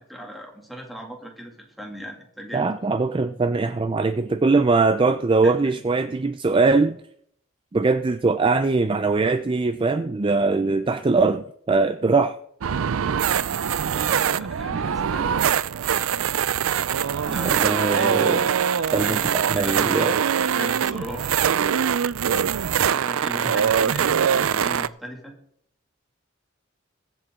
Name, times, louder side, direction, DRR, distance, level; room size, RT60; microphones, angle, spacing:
voice 1, 0.0-2.8 5.4-5.6 13.9-15.3 17.2-18.1 18.8-21.4 22.8-25.3, equal, ahead, 2.3 m, -37 dB
voice 2, 2.5-7.0 7.7-12.4 17.5-18.5 18.9-20.2, right 3 dB, 25° right, 0.4 m, -21 dB
sound 1, 12.6-24.9, right 8 dB, 85° right, 0.4 m, -23 dB
22.5 x 7.8 x 3.7 m
head